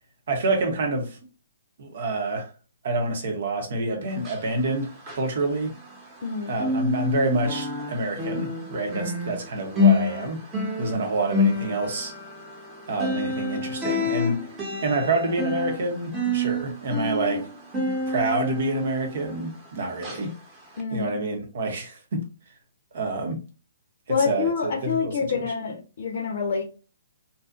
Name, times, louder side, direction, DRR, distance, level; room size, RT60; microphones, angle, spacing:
voice 1, 0.3-1.2 1.8-2.5 2.8-5.7 6.5-10.4 10.8-12.1 12.9-14.5 14.8-17.5 18.1-20.3 20.9-22.3 22.9-23.4 24.2-25.2, right 2 dB, 60° right, 0.9 m, -27 dB
sound 1, 4.1-6.3 6.5-19.7 20.0-20.2 20.7-20.8, left 3 dB, 20° right, 0.9 m, -28 dB
voice 2, 6.2-6.6 20.8-21.2 24.1-26.6, left 5 dB, 60° left, 0.6 m, -27 dB
2.6 x 2.4 x 2.4 m
figure-of-eight pair, 130°, 0 cm